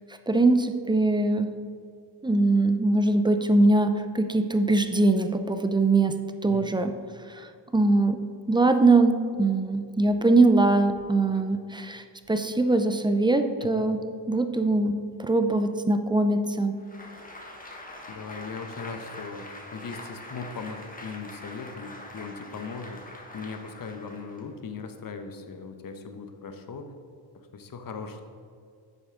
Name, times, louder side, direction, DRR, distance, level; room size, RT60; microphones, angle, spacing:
voice 1, 0.3-1.6 2.2-6.9 7.3-8.2 8.5-14.0 14.3-16.8, right 2 dB, 10° right, 8 dB, 0.5 m, -22 dB
Applause, 16.8-24.5, left 1 dB, 15° left, 1.4 m, -44 dB
voice 2, 18.1-23.0 23.3-26.9 27.5-28.3, left 5 dB, 45° left, 6 dB, 1.0 m, -39 dB
10.5 x 6.8 x 3.8 m, 2.3 s
cardioid pair, 80°, 48 cm